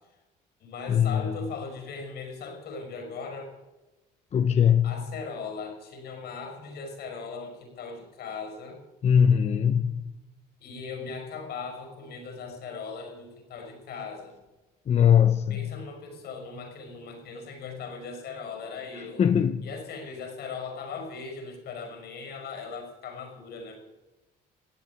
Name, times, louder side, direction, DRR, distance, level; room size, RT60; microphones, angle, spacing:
voice 1, 0.6-3.5 4.8-8.8 10.6-14.3 15.5-19.2 19.6-23.8, left 4 dB, 70° left, 5.5 m, -39 dB
voice 2, 4.3-4.8 9.0-10.0 14.9-15.6 19.2-19.6, left 8 dB, 40° left, 0.8 m, -20 dB
16.5 x 8.8 x 9.5 m
cardioid pair, 110°, 17 cm